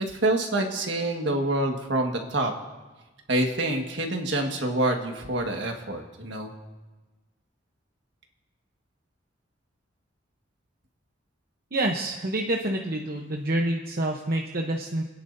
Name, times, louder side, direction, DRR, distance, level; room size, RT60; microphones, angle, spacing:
voice 1, 0.1-2.5 3.3-6.5, right 2 dB, 65° right, 2 dB, 1.7 m, -26 dB
voice 2, 11.7-15.0, right 1 dB, 50° right, 1 dB, 0.9 m, -27 dB
29.5 x 10.5 x 2.7 m, 1.2 s
head